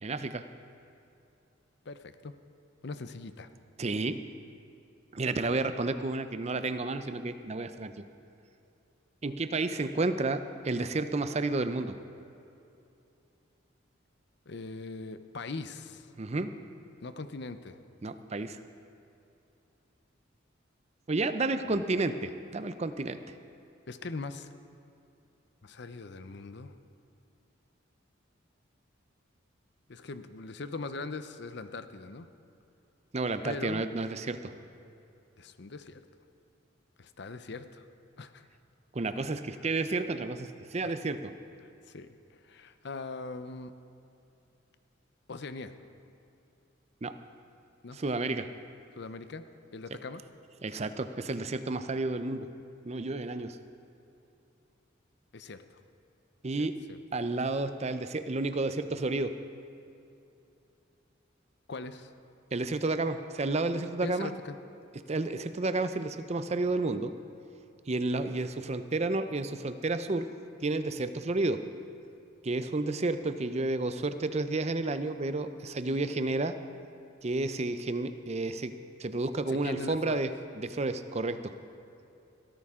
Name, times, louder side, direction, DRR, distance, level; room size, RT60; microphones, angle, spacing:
voice 1, 0.0-0.4 3.8-4.2 5.1-8.0 9.2-12.0 16.2-16.5 18.0-18.6 21.1-23.2 33.1-34.5 38.9-41.3 47.0-47.2 47.9-48.5 50.6-52.5 52.8-53.6 56.4-56.8 57.1-59.4 62.5-64.3 65.1-67.1 67.9-70.3 70.6-71.7 72.4-76.6 77.2-78.7 79.0-81.5, right 2 dB, 35° right, 10 dB, 0.6 m, -31 dB
voice 2, 1.9-2.3 2.8-3.5 14.5-16.1 17.0-17.8 21.7-21.8 23.9-24.5 25.6-26.7 29.9-32.3 33.4-33.8 35.4-36.0 37.0-37.9 38.2-38.4 39.1-39.2 39.5-39.7 40.8-40.9 41.9-42.1 42.4-43.7 45.3-45.7 47.8-48.0 49.0-49.4 49.7-50.2 55.3-55.6 56.6-57.0 61.7-62.1 64.0-64.6 79.5-80.2, left 3 dB, 60° left, 11 dB, 0.7 m, -41 dB
21.5 x 13.5 x 3.7 m, 2.7 s
head